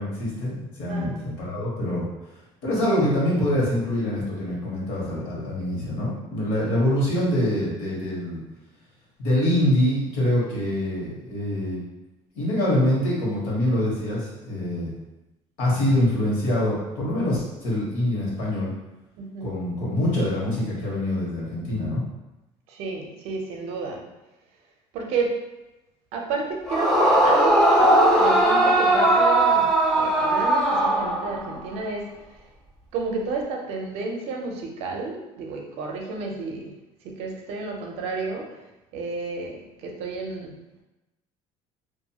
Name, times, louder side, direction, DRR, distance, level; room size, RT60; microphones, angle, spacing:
voice 1, 0.0-2.0 2.6-8.4 9.2-11.8 12.3-14.9 15.6-18.7 19.4-22.0, left 1 dB, 80° left, -5 dB, 1.2 m, -25 dB
voice 2, 0.9-1.2 5.6-5.7 19.2-19.5 22.7-24.0 24.9-25.3 26.1-32.1 32.3-32.4 32.9-36.7 37.0-38.6 38.9-40.5, right 3 dB, 55° right, 1 dB, 0.5 m, -31 dB
Yell / Screaming, 26.7-31.6, right 1 dB, 5° left, 0.4 m, -19 dB
2.5 x 2.3 x 2.8 m, 1.0 s
cardioid pair, 165°, 12 cm